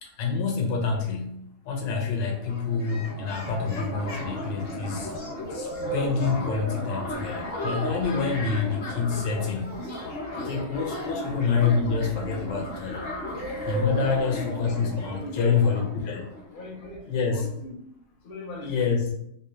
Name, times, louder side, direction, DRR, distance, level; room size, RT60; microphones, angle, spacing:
voice 1, 0.0-5.1 5.5-9.8 10.4-13.1 13.7-16.2 17.1-17.5 18.6-19.1, left 5 dB, 75° left, 2 dB, 1.3 m, -27 dB
sound 1, 2.3-16.9, equal, 45° left, 0.8 m, -34 dB
voice 2, 14.0-15.7 16.5-17.8 18.2-19.0, left 1 dB, 60° left, -2 dB, 0.5 m, -40 dB
3.3 x 2.6 x 3.0 m, 0.75 s
omnidirectional pair, 2.0 m